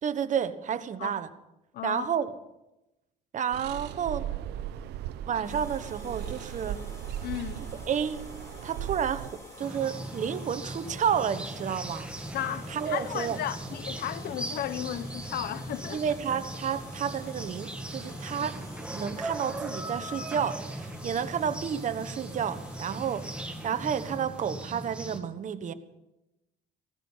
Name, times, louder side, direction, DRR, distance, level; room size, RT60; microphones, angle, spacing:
voice 1, 0.0-1.3 1.8-2.3 3.3-4.3 5.3-6.8 7.8-8.2 8.6-12.1 12.7-13.4 15.9-18.6 18.9-23.3 23.6-25.7, right 8 dB, 45° right, 1.2 m, -31 dB
voice 2, 1.7-2.1 7.2-7.6 12.3-16.0, left 11 dB, 65° left, 1.0 m, -34 dB
sound 1, 3.5-9.3, right 11 dB, 80° right, 0.8 m, -37 dB
sound 2, 5.4-24.2, left 1 dB, 15° left, 7.3 m, -48 dB
sound 3, 9.6-25.2, right 1 dB, 5° right, 1.9 m, -39 dB
17.5 x 14.5 x 5.7 m
cardioid pair, 110°, 17 cm